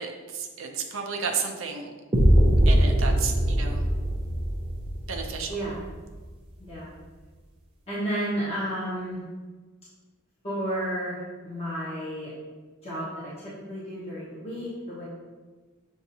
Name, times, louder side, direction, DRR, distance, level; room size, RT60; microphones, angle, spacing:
voice 1, 0.0-1.9 2.7-3.9 5.1-5.5, right 5 dB, 65° right, 2 dB, 0.6 m, -32 dB
sound 1, 2.1-6.1, equal, 25° right, 0.6 m, -22 dB
voice 2, 5.5-5.8 6.6-6.9 7.9-9.2 10.4-12.3 12.8-15.0, right 1 dB, 30° left, -11 dB, 1.2 m, -32 dB
6.9 x 2.6 x 2.7 m, 1.4 s
head